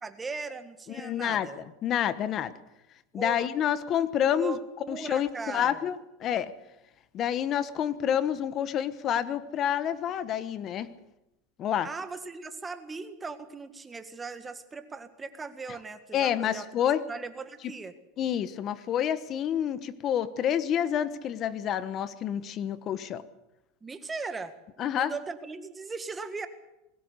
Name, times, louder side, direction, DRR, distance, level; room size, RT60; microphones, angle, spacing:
voice 1, 0.0-1.6 3.1-3.5 4.3-5.9 11.8-16.7 17.1-17.9 23.8-24.6 24.9-26.5, right 4 dB, 15° right, 10 dB, 1.7 m, -38 dB
voice 2, 0.9-2.5 3.1-4.6 4.9-6.5 7.1-10.9 11.6-11.9 16.1-17.0 18.2-23.2 24.8-25.1, left 9 dB, 35° left, 15 dB, 1.2 m, -28 dB
21.0 x 17.5 x 8.2 m, 0.92 s
supercardioid pair, 145°, 0 cm